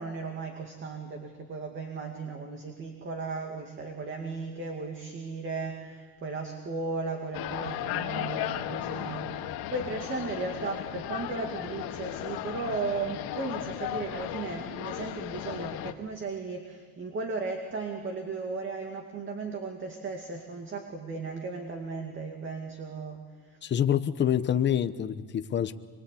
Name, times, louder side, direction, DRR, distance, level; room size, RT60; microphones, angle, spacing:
voice 1, 0.0-23.6, right 4 dB, 30° right, 3 dB, 2.4 m, -36 dB
sound 1, 7.3-15.9, left 12 dB, 75° left, 1.9 m, -35 dB
voice 2, 23.6-25.7, left 9 dB, 30° left, 10 dB, 0.9 m, -26 dB
26.5 x 23.5 x 8.4 m, 1.5 s
cardioid pair, 165°, 39 cm